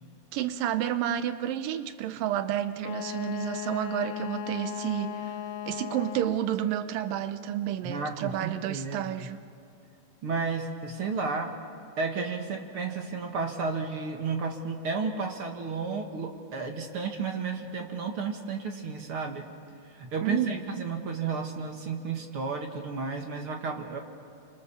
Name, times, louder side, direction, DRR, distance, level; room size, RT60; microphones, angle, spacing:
voice 1, 0.3-5.4 5.7-9.4 20.2-20.9, right 11 dB, 90° right, 11 dB, 2.5 m, -30 dB
Wind instrument woodwind instrument, 2.8-6.5, left 11 dB, 90° left, 2.5 m, -36 dB
voice 2, 7.8-9.3 10.2-11.6 12.0-19.4 19.9-24.0, right 4 dB, 45° right, 3 dB, 2.2 m, -32 dB
29.0 x 25.5 x 7.0 m, 2.6 s
omnidirectional pair, 3.8 m